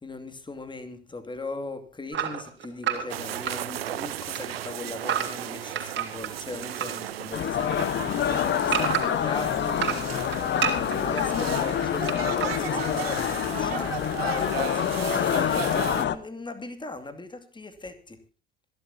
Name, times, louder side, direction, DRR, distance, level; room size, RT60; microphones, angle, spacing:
voice 1, 0.0-18.2, left 3 dB, 15° left, 2.5 m, -39 dB
sound 1, 2.1-4.0 4.3-7.0 7.3-9.3 9.7-11.2 12.1-12.6, right 9 dB, 40° right, 3.6 m, -30 dB
sound 2, 3.1-16.0, right 12 dB, 80° right, 1.0 m, -36 dB
sound 3, 7.3-16.2, left 10 dB, 40° left, 1.2 m, -27 dB
26.0 x 11.5 x 2.8 m
hypercardioid pair, 70°, 29 cm